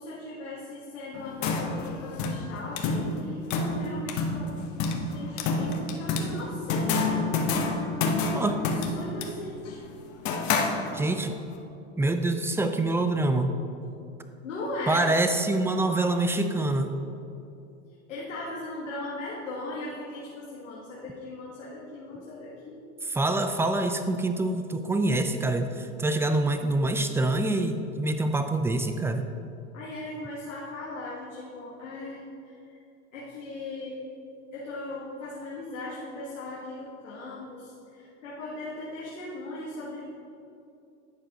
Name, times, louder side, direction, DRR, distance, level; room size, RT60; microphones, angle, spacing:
voice 1, 0.0-7.3 8.6-8.7 8.9-9.9 14.4-15.1 18.1-22.8 29.7-32.8 33.1-34.0 34.5-40.0, left 2 dB, 85° left, -5 dB, 1.7 m, -38 dB
sound 1, 1.1-11.3, left 3 dB, 50° left, 1.1 m, -29 dB
voice 2, 10.9-11.3 12.0-13.5 14.9-16.9 23.0-29.3, right 2 dB, 5° right, 8 dB, 0.4 m, -26 dB
11.5 x 7.9 x 3.0 m, 2.7 s
hypercardioid pair, 100°, 37 cm